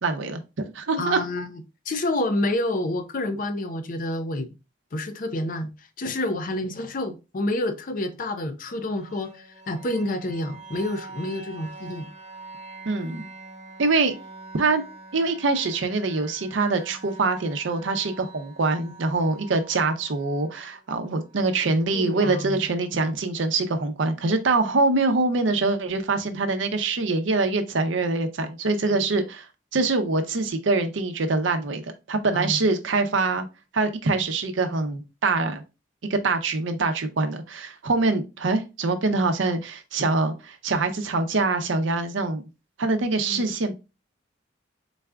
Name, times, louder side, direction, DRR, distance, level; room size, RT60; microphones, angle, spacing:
voice 1, 0.0-1.2 12.9-13.3 13.8-14.1 14.6-14.8 15.1-29.5 29.7-33.5 33.7-35.6 36.1-42.4 42.8-43.7, right 3 dB, 80° right, 0.6 m, -24 dB
voice 2, 1.0-4.5 4.9-12.1 21.9-22.6 32.3-32.6 43.3-43.5, left 1 dB, 45° left, 0.5 m, -29 dB
sound 1, 8.7-22.6, right 3 dB, 40° right, 1.0 m, -45 dB
4.0 x 2.3 x 3.4 m
head